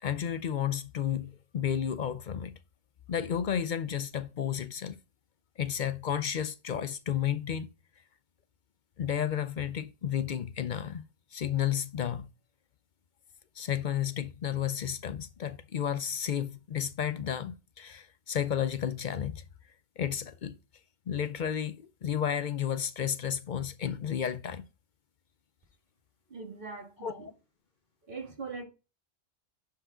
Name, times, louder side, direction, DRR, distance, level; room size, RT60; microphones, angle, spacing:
voice 1, 0.0-2.6 3.1-5.0 5.6-7.7 9.0-11.0 11.3-12.3 13.6-19.4 20.0-20.6 21.1-24.6 27.0-27.3, left 9 dB, 55° left, 0.6 m, -32 dB
voice 2, 26.3-27.3 28.1-28.6, right 4 dB, 50° right, 2.0 m, -41 dB
10.5 x 4.8 x 3.7 m
omnidirectional pair, 1.1 m